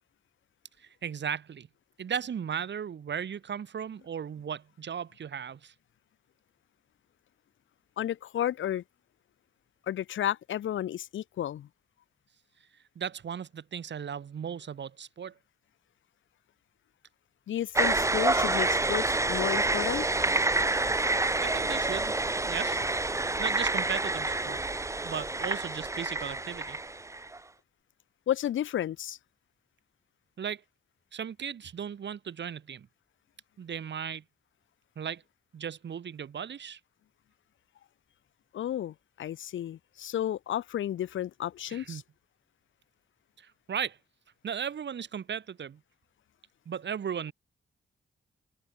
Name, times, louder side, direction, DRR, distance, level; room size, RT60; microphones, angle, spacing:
voice 1, 0.8-1.7 2.0-5.7 13.0-15.3 21.4-22.2 22.5-22.8 23.4-24.6 25.0-26.8 30.4-30.6 31.1-32.9 33.6-34.2 35.0-35.2 35.5-36.8 41.7-42.0 43.4-44.0 44.4-45.8 46.7-47.3, right 8 dB, 65° right, 2.2 m, -36 dB
voice 2, 8.0-8.8 9.9-11.7 17.5-20.1 28.3-29.2 38.5-42.0, left 11 dB, 90° left, 0.8 m, -32 dB
sound 1, 17.8-27.4, right 2 dB, 15° right, 0.8 m, -28 dB
cardioid pair, 95°, 19 cm